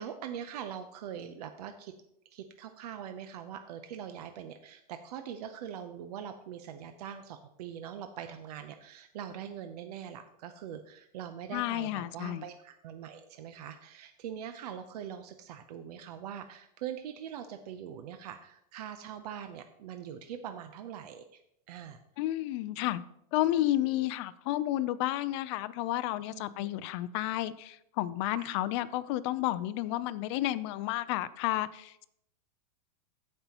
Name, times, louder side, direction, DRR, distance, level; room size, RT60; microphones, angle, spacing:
voice 1, 0.0-1.9 2.3-21.4 21.7-22.0 26.3-26.7 28.3-28.5, right 9 dB, 70° right, 8 dB, 0.7 m, -42 dB
voice 2, 11.5-12.4 22.2-23.0 23.3-32.0, left 14 dB, 40° left, 15 dB, 0.5 m, -31 dB
15.0 x 5.5 x 2.9 m, 0.77 s
supercardioid pair, 150°, 21 cm